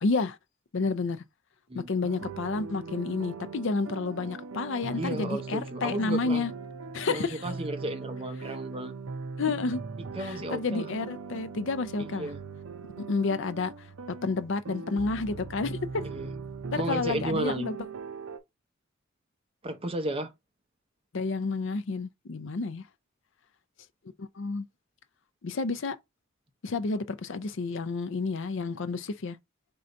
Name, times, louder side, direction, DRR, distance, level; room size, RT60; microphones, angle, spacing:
voice 1, 0.0-0.4 0.7-1.2 1.8-6.5 6.9-7.4 9.4-9.8 10.2-12.3 13.0-13.9 14.2-15.8 16.7-17.8 21.1-22.8 24.2-24.7 25.4-26.0 26.6-29.4, left 3 dB, 60° left, 0.5 m, -30 dB
sound 1, 2.0-18.4, right 4 dB, 70° right, 0.6 m, -40 dB
voice 2, 5.0-6.4 7.1-8.9 10.2-10.9 12.0-12.4 16.0-16.3 16.8-17.7 19.6-20.3, right 1 dB, 25° right, 0.7 m, -33 dB
3.8 x 2.6 x 4.4 m
head